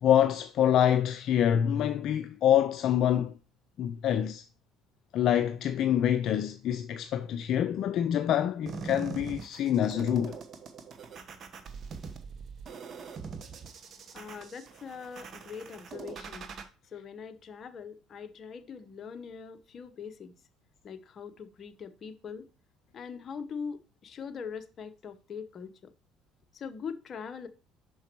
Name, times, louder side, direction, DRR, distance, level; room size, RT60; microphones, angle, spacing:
voice 1, 0.0-3.3 3.8-4.4 5.1-10.3, left 10 dB, 60° left, 0.4 m, -26 dB
sound 1, 8.7-16.6, right 5 dB, 45° right, 1.0 m, -42 dB
voice 2, 14.1-16.5 16.9-20.4 20.8-22.5 22.9-25.9 26.5-27.5, left 6 dB, 45° left, 0.8 m, -42 dB
5.9 x 4.7 x 4.4 m
supercardioid pair, 90°, 0 cm